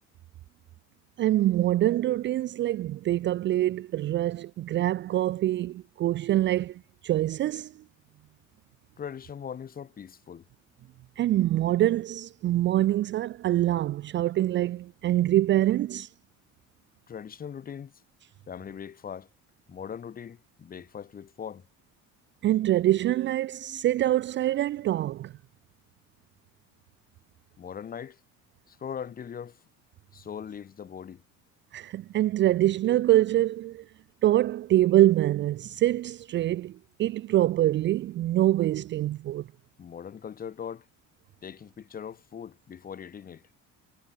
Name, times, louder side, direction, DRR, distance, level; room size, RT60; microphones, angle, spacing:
voice 1, 1.2-7.7 11.2-16.1 22.4-25.3 31.7-33.8 34.2-39.5, right 14 dB, 40° right, 0.5 m, -25 dB
voice 2, 9.0-10.4 17.1-17.9 18.5-19.3 19.7-21.7 27.6-28.2 28.7-29.6 30.1-31.2 39.8-40.9 41.4-43.4, left 8 dB, 30° left, 3.3 m, -40 dB
cardioid pair, 170°, 30 cm